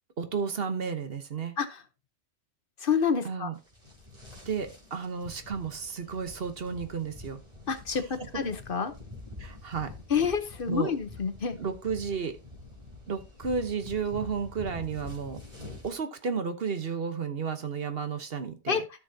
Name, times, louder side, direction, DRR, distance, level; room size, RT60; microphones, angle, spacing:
voice 1, 0.2-1.6 3.2-3.6 4.5-7.4 8.3-8.5 9.4-9.9 10.7-10.9 11.6-12.4 13.1-15.4 15.8-18.8, right 6 dB, 55° right, 9 dB, 1.2 m, -32 dB
voice 2, 2.8-3.5 7.7-8.9 10.1-11.6 18.7-18.8, left 6 dB, 55° left, 10 dB, 1.0 m, -28 dB
sound 1, 3.6-15.9, left 3 dB, 35° right, 3.3 m, -46 dB
13.5 x 6.2 x 2.7 m, 0.28 s
omnidirectional pair, 1.2 m